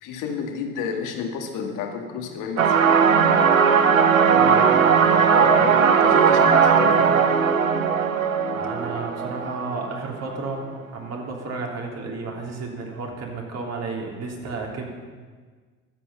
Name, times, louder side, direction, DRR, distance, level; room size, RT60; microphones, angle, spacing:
voice 1, 0.0-2.8 5.3-7.2, left 6 dB, 50° left, 3 dB, 2.1 m, -30 dB
sound 1, 2.6-10.1, right 6 dB, 80° right, 0.9 m, -18 dB
voice 2, 4.3-4.8 8.5-10.7 10.9-14.9, right 3 dB, 40° right, -1 dB, 3.4 m, -32 dB
23.5 x 8.2 x 5.6 m, 1.5 s
figure-of-eight pair, 60°, 40 cm